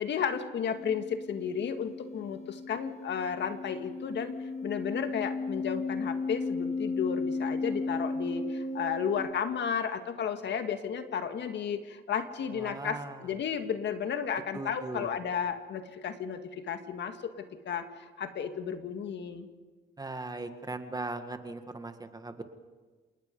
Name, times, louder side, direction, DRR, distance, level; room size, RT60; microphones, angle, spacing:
voice 1, 0.0-4.3 4.6-19.5, left 7 dB, 65° left, 8 dB, 1.8 m, -33 dB
sound 1, 0.7-9.2, left 3 dB, 35° left, 1.6 m, -35 dB
voice 2, 12.5-13.3 14.5-15.1 20.0-22.4, right 2 dB, 20° right, 8 dB, 1.8 m, -39 dB
28.0 x 19.0 x 5.3 m, 1.3 s
cardioid pair, 90°, 20 cm